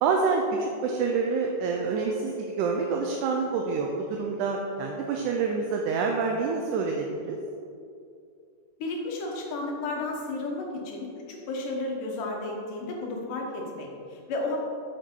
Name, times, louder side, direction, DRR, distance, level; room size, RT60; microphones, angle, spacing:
voice 1, 0.0-7.4, right 4 dB, 80° right, 1 dB, 2.2 m, -27 dB
voice 2, 8.8-14.6, left 2 dB, 90° left, 0 dB, 2.9 m, -33 dB
8.7 x 8.1 x 3.8 m, 2.4 s
omnidirectional pair, 3.6 m